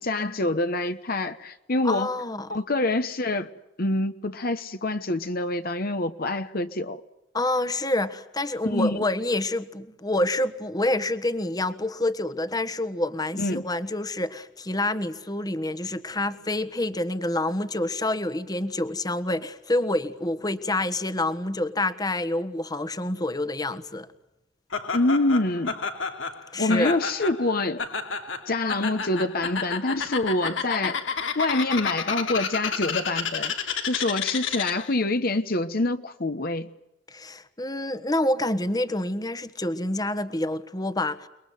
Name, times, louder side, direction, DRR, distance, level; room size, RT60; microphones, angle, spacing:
voice 1, 0.0-2.1 2.5-3.5 3.8-7.0 8.7-9.0 13.4-13.7 24.9-25.8 26.6-27.8 28.5-31.1 31.3-33.5 33.8-36.7, left 2 dB, 50° left, 1.1 m, -26 dB
voice 2, 1.8-2.5 7.3-24.1 26.5-27.0 37.1-41.3, left 1 dB, 20° left, 1.4 m, -27 dB
Laughter, 24.7-35.0, left 6 dB, 85° left, 3.1 m, -31 dB
30.0 x 21.0 x 9.4 m
head